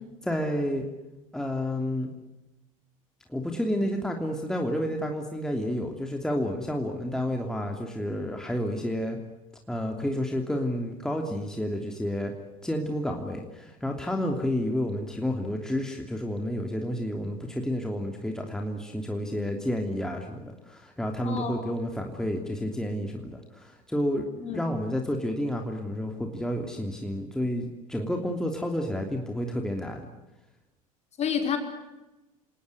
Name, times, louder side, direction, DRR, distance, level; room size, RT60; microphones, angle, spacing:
voice 1, 0.2-0.9 1.3-2.1 3.3-9.2 9.7-12.3 12.6-30.1, equal, 5° left, 2 dB, 3.0 m, -30 dB
voice 2, 21.2-21.7 24.4-24.6 31.2-31.6, left 7 dB, 35° left, 4 dB, 5.4 m, -29 dB
28.0 x 19.0 x 9.6 m, 1.0 s
figure-of-eight pair, 75°, 18 cm